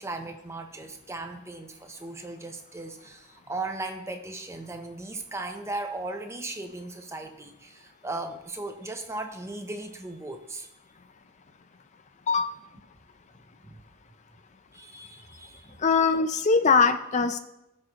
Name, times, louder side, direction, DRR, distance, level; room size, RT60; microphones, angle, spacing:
voice 1, 0.0-10.7 13.6-13.8 14.7-15.8, right 2 dB, 15° right, 5 dB, 0.6 m, -37 dB
voice 2, 15.8-17.4, left 5 dB, 35° left, 10 dB, 0.4 m, -22 dB
17.0 x 6.4 x 2.9 m, 0.87 s
head